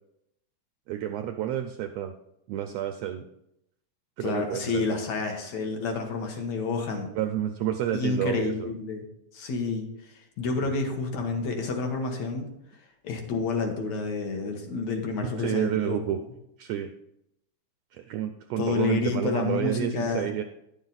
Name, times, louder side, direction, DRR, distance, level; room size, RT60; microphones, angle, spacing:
voice 1, 0.9-2.1 2.5-3.2 4.2-5.0 7.1-8.7 10.6-10.7 15.2-16.2 16.6-16.9 17.9-20.4, right 11 dB, 80° right, 6 dB, 1.5 m, -30 dB
voice 2, 4.2-7.1 7.9-9.0 9.3-12.5 13.0-16.2 18.6-20.3, left 4 dB, 70° left, 3 dB, 2.3 m, -29 dB
10.5 x 7.2 x 4.0 m, 0.81 s
omnidirectional pair, 3.4 m